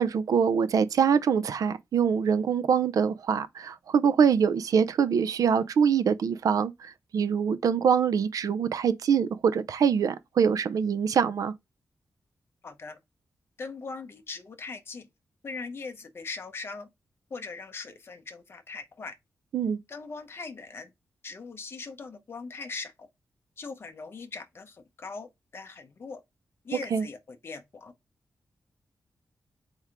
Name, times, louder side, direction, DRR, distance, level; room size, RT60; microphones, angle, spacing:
voice 1, 0.0-11.5 19.5-19.8 26.9-27.1, right 7 dB, 75° right, 0.5 m, -24 dB
voice 2, 12.6-13.0 13.6-15.1 15.4-16.9 17.3-19.2 19.9-20.9 21.2-23.1 23.6-26.2 26.6-27.9, left 4 dB, 40° left, 0.8 m, -40 dB
4.3 x 3.4 x 3.5 m
wide cardioid pair, 155°, 6 cm